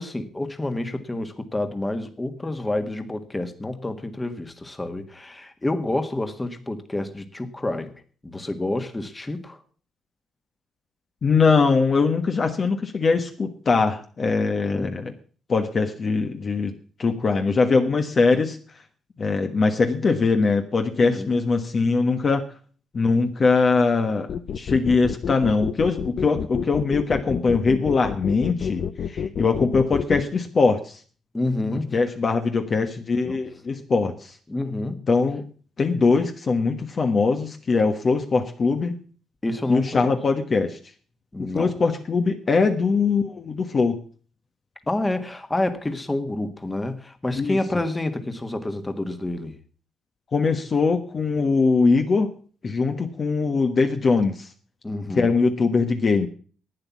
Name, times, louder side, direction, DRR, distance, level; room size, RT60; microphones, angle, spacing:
voice 1, 0.0-7.9 8.2-9.6 14.6-15.0 21.0-21.3 31.3-32.0 33.2-33.4 34.5-35.0 39.4-40.1 41.3-41.7 44.9-49.6 54.8-55.3, left 2 dB, 15° left, 1.7 m, -28 dB
voice 2, 11.2-15.1 15.5-16.7 17.0-18.6 19.2-22.4 22.9-31.0 31.9-34.3 35.1-35.4 35.8-38.9 39.7-40.8 41.4-44.0 47.4-47.6 50.3-52.3 52.6-54.5 55.1-56.3, left 4 dB, 40° left, 1.3 m, -21 dB
sound 1, 24.3-30.2, left 7 dB, 60° left, 0.8 m, -29 dB
11.5 x 9.1 x 7.1 m
cardioid pair, 90°, 0 cm